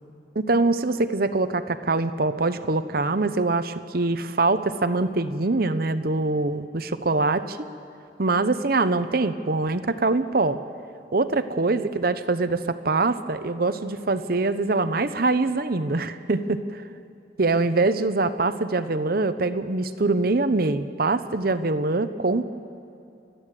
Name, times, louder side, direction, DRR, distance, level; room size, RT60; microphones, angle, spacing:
voice 1, 0.3-7.6 8.2-10.6 11.1-16.8 17.4-22.5, right 3 dB, 50° right, 11 dB, 0.7 m, -24 dB
30.0 x 12.5 x 7.5 m, 2.8 s
head